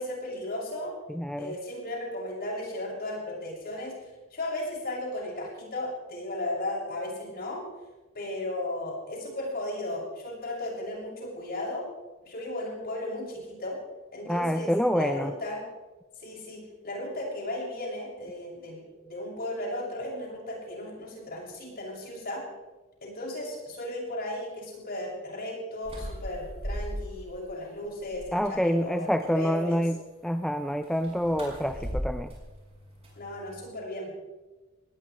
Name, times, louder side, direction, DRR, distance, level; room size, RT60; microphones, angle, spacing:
voice 1, 0.0-0.9 1.4-4.0 4.3-7.6 8.1-11.9 12.2-13.8 14.1-15.6 16.2-22.4 23.0-29.8 31.7-31.9 33.2-34.1, left 1 dB, 50° left, -3 dB, 6.9 m, -35 dB
voice 2, 1.1-1.5 14.3-15.3 28.3-32.3, equal, ahead, 8 dB, 0.5 m, -27 dB
sound 1, 25.8-27.4 27.8-28.6 30.8-33.7, equal, 30° right, 6.7 m, -38 dB
20.5 x 20.0 x 3.4 m, 1.2 s
head